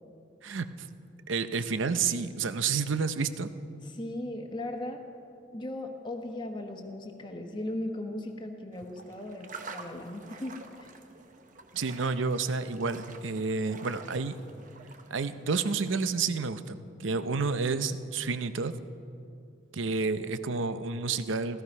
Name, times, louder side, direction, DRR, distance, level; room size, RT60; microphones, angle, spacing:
voice 1, 0.4-0.9 1.3-3.5 11.7-14.4 15.1-18.7 19.7-21.6, right 4 dB, 75° right, 12 dB, 0.6 m, -30 dB
voice 2, 3.8-5.0 5.5-10.9, left 1 dB, 25° left, 3 dB, 1.1 m, -37 dB
sound 1, 8.7-16.3, right 3 dB, 40° right, 0.9 m, -48 dB
16.0 x 14.0 x 5.4 m, 2.6 s
head